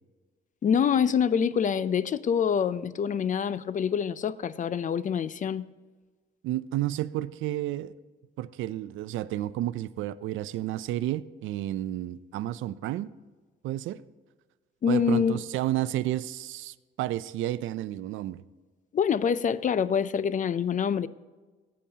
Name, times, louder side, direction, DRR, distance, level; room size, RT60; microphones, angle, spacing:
voice 1, 0.6-5.7 14.8-15.4 18.9-21.1, left 7 dB, 40° left, 0.5 m, -26 dB
voice 2, 6.4-7.9 8.4-13.1 13.6-14.0 14.9-18.4, right 14 dB, 80° right, 0.4 m, -31 dB
14.5 x 8.6 x 2.8 m
cardioid pair, 90°, 20 cm